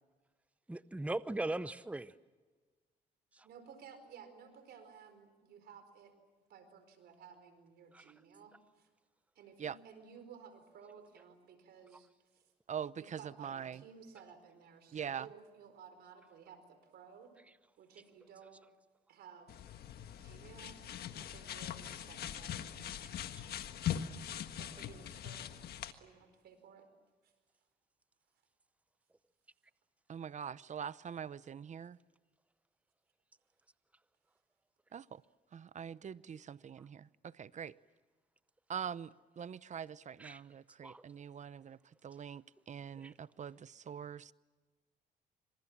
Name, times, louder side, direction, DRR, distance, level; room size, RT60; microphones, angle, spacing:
voice 1, 0.7-2.1 7.9-8.0 40.2-40.4 40.8-41.0 43.0-43.1, right 2 dB, 10° right, 0.8 m, -39 dB
voice 2, 3.4-6.2 6.5-8.9 9.3-12.5 12.9-17.4 17.8-18.6 19.1-19.6 20.1-23.1 24.6-25.5 25.9-26.9 27.2-27.3, right 7 dB, 80° right, 4.5 m, -56 dB
voice 3, 12.7-13.8 14.9-15.3 30.1-32.0 34.9-35.2 35.5-37.7 38.7-41.8 42.0-44.3, right 8 dB, 45° right, 0.7 m, -43 dB
sound 1, 19.5-25.9, left 10 dB, 75° left, 1.5 m, -42 dB
26.5 x 26.0 x 7.4 m
cardioid pair, 85°, 16 cm